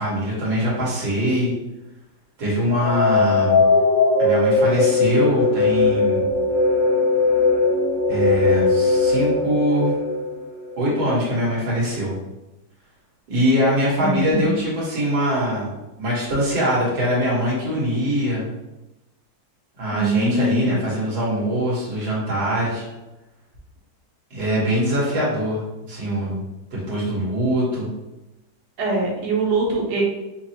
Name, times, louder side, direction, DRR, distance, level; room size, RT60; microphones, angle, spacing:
voice 1, 0.0-1.5 2.4-3.6 4.2-6.3 8.1-9.9 10.8-12.2 13.3-18.5 19.8-22.9 24.3-26.4 26.7-27.9, equal, 80° right, -6 dB, 2.1 m, -23 dB
sound 1, 2.8-10.8, left 3 dB, 80° left, 1.4 m, -19 dB
voice 2, 14.0-14.5 19.9-20.8 28.8-30.0, right 2 dB, 50° right, -3 dB, 1.0 m, -23 dB
6.0 x 2.0 x 2.8 m, 1.0 s
omnidirectional pair, 2.1 m